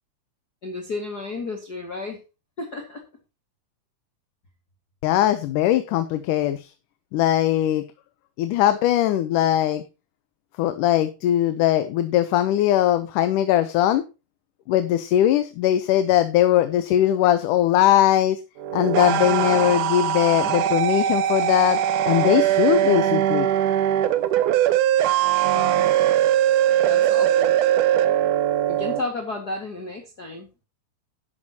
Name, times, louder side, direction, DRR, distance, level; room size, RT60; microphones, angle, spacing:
voice 1, 0.6-2.2 2.6-3.0 5.7-5.9 25.5-25.9 26.9-27.5 28.7-30.5, left 3 dB, 35° left, 2 dB, 1.9 m, -32 dB
voice 2, 5.0-6.7 7.1-7.8 8.4-9.8 10.6-14.0 14.7-18.4 18.7-21.8 22.1-23.5, left 12 dB, 85° left, 10 dB, 2.4 m, -20 dB
sound 1, 18.6-29.0, right 11 dB, 80° right, 2.4 m, -21 dB
11.5 x 11.0 x 2.8 m, 0.29 s
omnidirectional pair, 3.6 m